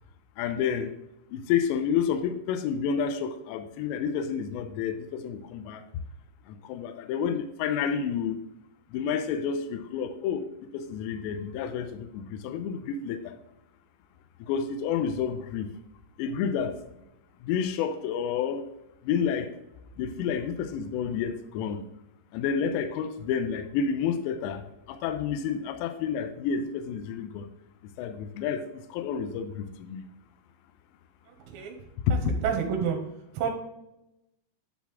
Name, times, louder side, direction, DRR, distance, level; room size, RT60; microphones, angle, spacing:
voice 1, 0.4-0.9 1.3-5.8 6.5-8.4 8.9-13.3 14.4-15.7 16.2-16.8 17.4-18.6 19.0-19.6 20.0-21.8 22.3-27.5 28.0-30.0 32.1-32.3, left 7 dB, 85° left, 2.5 m, -30 dB
voice 2, 31.3-31.7 32.1-33.0 33.3-33.5, right 7 dB, 75° right, 2.9 m, -29 dB
10.5 x 4.1 x 3.5 m
omnidirectional pair, 5.6 m